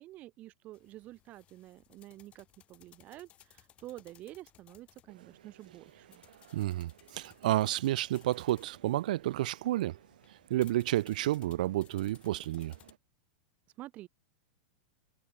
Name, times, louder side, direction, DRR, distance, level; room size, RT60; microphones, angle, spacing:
voice 1, 0.0-6.2 13.8-14.1, right 16 dB, 30° right, 1.4 m, -49 dB
sound 1, 0.7-12.9, left 11 dB, 25° left, 7.1 m, -62 dB
sound 2, 5.1-13.0, right 11 dB, 85° right, 2.6 m, -60 dB
voice 2, 6.5-10.0 10.5-12.7, right 15 dB, 70° right, 0.7 m, -30 dB
supercardioid pair, 150°, 4 cm